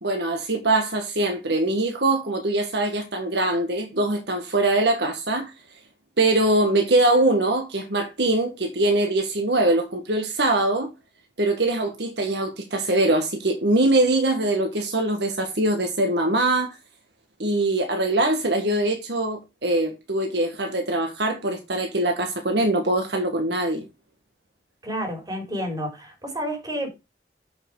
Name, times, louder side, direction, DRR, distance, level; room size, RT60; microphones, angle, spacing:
voice 1, 0.0-5.5 6.2-10.9 11.4-16.7 17.4-23.8, right 2 dB, 65° right, 1.6 m, -22 dB
voice 2, 24.8-26.9, equal, 20° right, 3.6 m, -30 dB
7.6 x 5.9 x 4.8 m
head